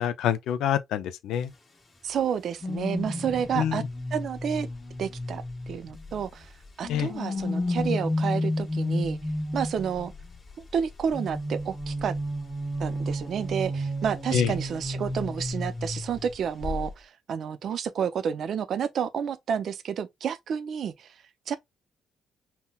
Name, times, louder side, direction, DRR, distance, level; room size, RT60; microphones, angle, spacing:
voice 1, 0.0-1.5 3.5-3.9 6.9-7.1 14.3-14.5, left 9 dB, 85° left, 0.4 m, -26 dB
voice 2, 2.0-3.8 4.1-4.7 5.0-6.5 6.8-9.2 9.5-10.1 10.6-12.1 12.8-21.1 21.5-21.6, right 7 dB, 65° right, 0.5 m, -30 dB
sound 1, 2.6-6.2 6.8-10.1 11.1-16.3 16.6-16.9, left 1 dB, 30° left, 1.4 m, -31 dB
5.6 x 2.1 x 2.3 m
cardioid pair, 90°, 0 cm